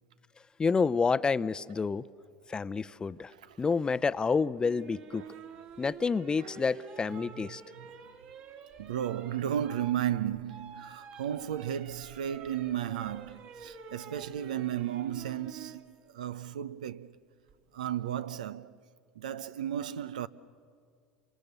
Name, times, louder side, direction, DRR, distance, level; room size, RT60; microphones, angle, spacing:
voice 1, 0.6-2.0 2.5-3.3 3.6-5.2 5.8-7.6, left 5 dB, 20° left, 0.7 m, -28 dB
voice 2, 3.3-3.6 5.1-5.4 6.4-6.5 7.1-7.9 8.8-17.2 17.7-18.7 19.1-20.3, right 10 dB, 85° right, 0.8 m, -34 dB
sound 1, 4.6-15.8 17.5-17.9, right 6 dB, 55° right, 3.2 m, -49 dB
29.0 x 26.5 x 6.8 m
hypercardioid pair, 85°, 4 cm